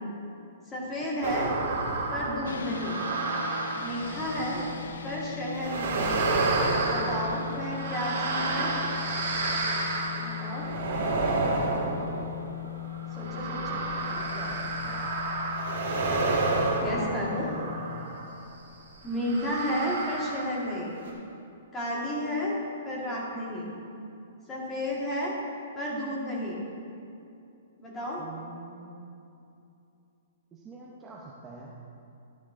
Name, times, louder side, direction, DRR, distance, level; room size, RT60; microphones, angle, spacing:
voice 1, 0.7-1.5 2.1-3.0 3.8-4.6 5.0-6.1 6.8-8.7 10.2-10.7 13.1-13.8 16.7-17.5 19.0-21.0 21.7-22.6 22.8-23.7 24.5-25.3 25.7-26.6 27.8-28.2, equal, 10° left, -4 dB, 1.4 m, -32 dB
sound 1, 1.2-4.9 5.5-18.4 19.2-20.8 21.0-21.1, right 3 dB, 65° right, 2.0 m, -30 dB
sound 2, 2.4-18.1, left 10 dB, 90° left, 0.5 m, -39 dB
voice 2, 7.3-7.6 11.6-12.5 14.1-15.1 16.7-18.0 28.2-29.1 30.5-31.7, right 3 dB, 10° right, -4 dB, 0.6 m, -45 dB
12.0 x 10.0 x 2.5 m, 2.7 s
hypercardioid pair, 170°, 0 cm